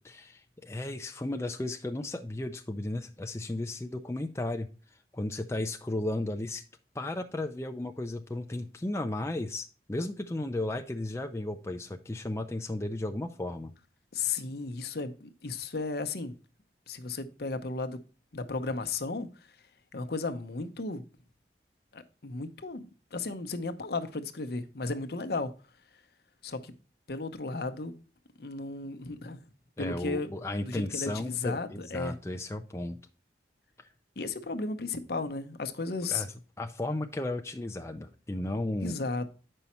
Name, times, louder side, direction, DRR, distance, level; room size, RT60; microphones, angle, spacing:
voice 1, 0.0-4.7 5.1-6.6 6.9-13.7 29.8-33.0 36.1-36.3 36.6-39.0, left 1 dB, 15° left, 0.5 m, -34 dB
voice 2, 14.1-16.3 16.9-18.0 18.3-19.3 19.9-21.0 21.9-22.9 23.1-25.5 26.4-26.7 27.1-27.9 28.4-29.4 29.8-30.3 30.7-32.1 34.2-36.2 38.8-39.3, left 3 dB, 60° left, 0.8 m, -34 dB
8.2 x 5.5 x 4.3 m
head